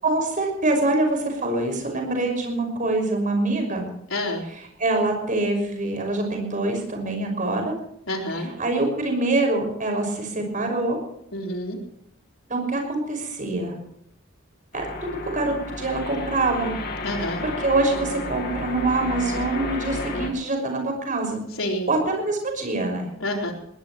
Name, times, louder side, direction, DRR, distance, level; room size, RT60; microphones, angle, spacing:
voice 1, 0.0-3.9 4.8-7.8 8.6-11.0 12.5-13.7 14.7-14.9 15.2-16.8 17.4-21.4 21.9-23.1, right 2 dB, 40° right, 3 dB, 5.9 m, -24 dB
voice 2, 4.1-4.4 8.1-8.5 11.3-11.8 17.0-17.4 21.6-21.9 23.2-23.5, left 1 dB, 90° left, 1 dB, 3.9 m, -28 dB
sound 1, 14.7-20.3, left 2 dB, 50° left, 2.8 m, -32 dB
21.0 x 19.5 x 3.1 m, 0.74 s
head